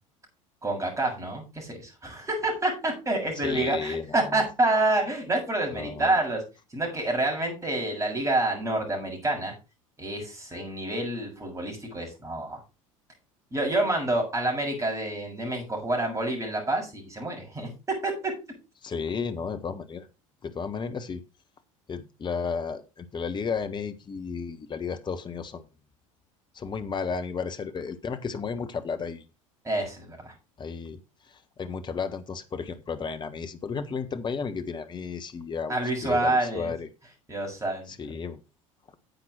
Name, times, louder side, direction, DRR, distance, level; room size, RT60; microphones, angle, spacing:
voice 1, 0.6-6.4 6.7-9.5 10.0-12.6 13.5-17.7 18.0-18.3 29.6-30.3 35.7-36.7 37.3-37.9, right 2 dB, 15° right, 0 dB, 7.3 m, -28 dB
voice 2, 3.4-4.4 5.7-6.2 18.8-20.1 20.4-21.2 21.9-25.6 26.5-29.2 30.6-31.0 31.3-36.9 37.9-38.4, left 5 dB, 25° left, 10 dB, 1.4 m, -33 dB
10.5 x 8.3 x 4.4 m, 0.29 s
figure-of-eight pair, 70°, 17 cm